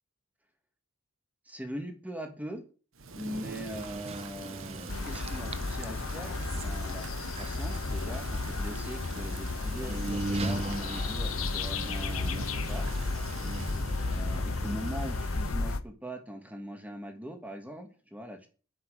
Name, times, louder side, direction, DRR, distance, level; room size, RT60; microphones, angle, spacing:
voice 1, 1.4-2.6 3.1-12.9 14.0-18.5, equal, 10° right, 5 dB, 2.6 m, -41 dB
Thunder / Rain, 2.9-14.0, right 4 dB, 70° right, 1.7 m, -45 dB
sound 1, 3.7-15.5, right 2 dB, 30° right, 0.8 m, -40 dB
sound 2, 4.9-15.8, left 3 dB, 85° left, 1.0 m, -33 dB
10.0 x 8.3 x 8.2 m, 0.38 s
head